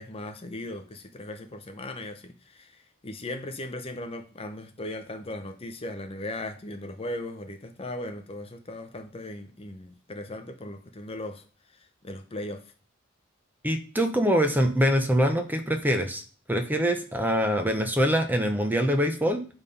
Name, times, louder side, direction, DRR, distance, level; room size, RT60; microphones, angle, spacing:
voice 1, 0.0-11.4 12.0-12.6, left 1 dB, 25° left, 0.7 m, -38 dB
voice 2, 13.6-16.2 16.5-19.4, equal, 10° right, 0.7 m, -24 dB
8.8 x 3.6 x 5.4 m
head